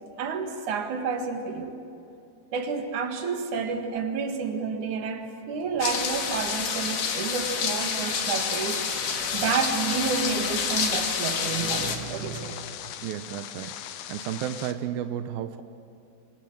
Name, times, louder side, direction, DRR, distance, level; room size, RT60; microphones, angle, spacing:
voice 1, 0.2-1.8 2.5-12.9, right 5 dB, 50° right, 4 dB, 2.8 m, -30 dB
sound 1, 5.8-12.0, left 6 dB, 55° left, 3.0 m, -28 dB
sound 2, 7.6-14.7, left 11 dB, 85° left, 3.4 m, -41 dB
voice 2, 13.0-13.7 14.1-15.6, right 10 dB, 85° right, 9 dB, 2.1 m, -32 dB
27.5 x 25.0 x 7.7 m, 2.7 s
omnidirectional pair, 5.3 m